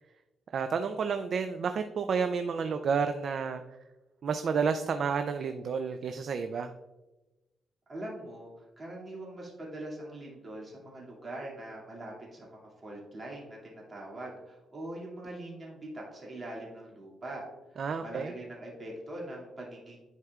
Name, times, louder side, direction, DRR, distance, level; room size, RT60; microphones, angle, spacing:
voice 1, 0.5-3.6 4.2-6.7 17.8-18.3, right 6 dB, 55° right, 8 dB, 0.4 m, -30 dB
voice 2, 7.9-17.4 17.7-20.0, right 1 dB, 30° right, -4 dB, 2.3 m, -42 dB
10.5 x 4.7 x 2.4 m, 1.1 s
cardioid pair, 130°, 0 cm